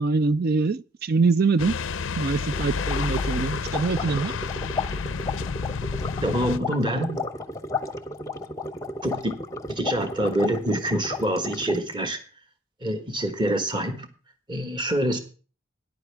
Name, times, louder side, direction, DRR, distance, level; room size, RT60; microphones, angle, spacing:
voice 1, 0.0-1.7 2.2-4.3, right 4 dB, 45° right, 0.4 m, -24 dB
sound 1, 1.6-6.6, left 5 dB, 65° left, 0.5 m, -30 dB
sound 2, 2.5-11.9, left 3 dB, 15° left, 0.8 m, -33 dB
voice 2, 6.2-7.2 9.0-9.3 9.7-12.2 12.8-14.1 14.5-15.2, right 1 dB, 20° right, 1.4 m, -26 dB
14.0 x 10.5 x 3.4 m
head